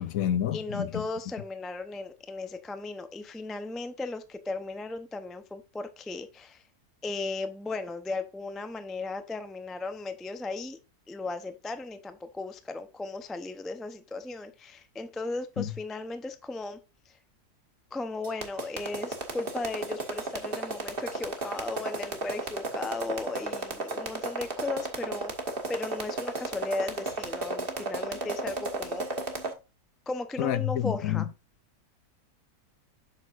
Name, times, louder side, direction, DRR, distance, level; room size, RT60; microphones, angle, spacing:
voice 1, 0.0-1.0 15.6-15.7 30.4-31.2, left 11 dB, 70° left, 1.0 m, -28 dB
voice 2, 0.5-6.6 7.0-10.8 11.1-16.8 17.1-17.2 17.9-25.3 25.7-29.3 30.1-31.3, left 3 dB, ahead, 0.3 m, -36 dB
sound 1, 18.2-29.5, right 2 dB, 35° right, 1.8 m, -33 dB
8.1 x 6.4 x 2.5 m
omnidirectional pair, 1.6 m